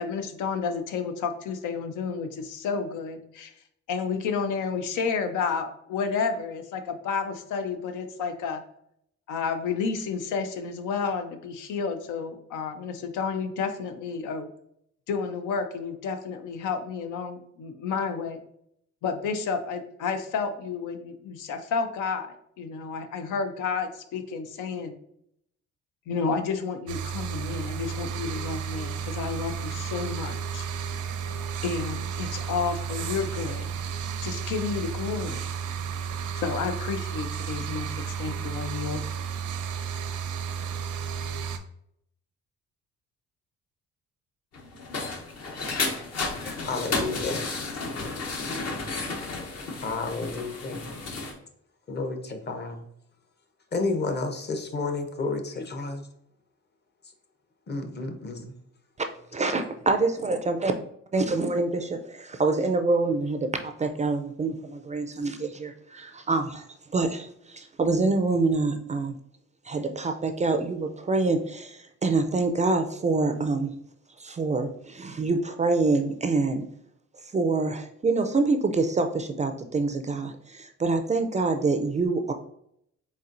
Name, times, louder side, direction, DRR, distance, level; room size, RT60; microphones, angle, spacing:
voice 1, 0.0-3.5 3.9-8.6 9.3-14.5 15.1-18.4 19.0-22.3 22.6-24.9 26.1-30.7 31.6-33.7 34.2-35.4 36.4-39.0, left 5 dB, 85° left, 7 dB, 0.6 m, -31 dB
sound 1, 26.9-41.6, right 7 dB, 75° right, 0.5 m, -33 dB
sound 2, 44.5-51.3, left 3 dB, 55° left, 0.9 m, -32 dB
voice 2, 46.4-47.5 49.8-50.8 51.9-52.9 53.7-56.0 57.7-58.5, left 3 dB, 35° left, 6 dB, 0.7 m, -31 dB
voice 3, 59.3-60.7 61.1-66.6 66.9-69.1 69.7-73.7 74.2-76.6 77.3-82.3, right 3 dB, 25° right, 7 dB, 0.3 m, -26 dB
4.2 x 3.8 x 2.5 m, 0.72 s
cardioid pair, 90°, 30 cm